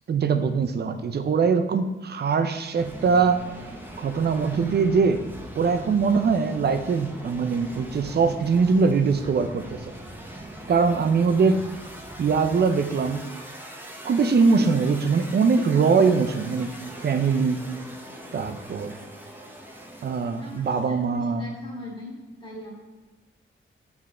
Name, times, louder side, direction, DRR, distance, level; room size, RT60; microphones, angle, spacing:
voice 1, 0.1-3.4 4.0-5.2 5.6-9.8 10.7-11.6 12.2-13.3 14.0-16.8 17.0-17.6 18.3-18.9 20.0-21.4, right 5 dB, 50° right, 8 dB, 0.5 m, -22 dB
sound 1, 2.7-21.0, right 1 dB, 10° right, 0.7 m, -41 dB
voice 2, 18.2-18.8 20.4-22.1 22.4-22.8, left 2 dB, 25° left, -5 dB, 1.7 m, -41 dB
7.7 x 3.5 x 3.7 m, 1.2 s
wide cardioid pair, 135°, 21 cm